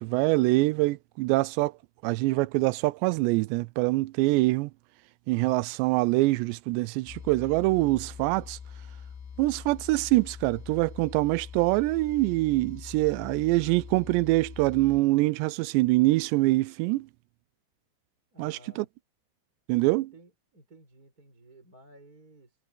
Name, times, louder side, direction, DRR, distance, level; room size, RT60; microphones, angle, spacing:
voice 1, 0.0-1.7 2.0-4.7 5.3-8.6 9.4-17.1 18.4-18.9 19.7-20.1, right 21 dB, 85° right, 2.5 m, -24 dB
sound 1, 7.0-15.0, left 7 dB, 85° left, 4.9 m, -44 dB
voice 2, 18.3-18.9 19.9-22.6, right 1 dB, 20° right, 5.9 m, -54 dB
omnidirectional pair, 5.6 m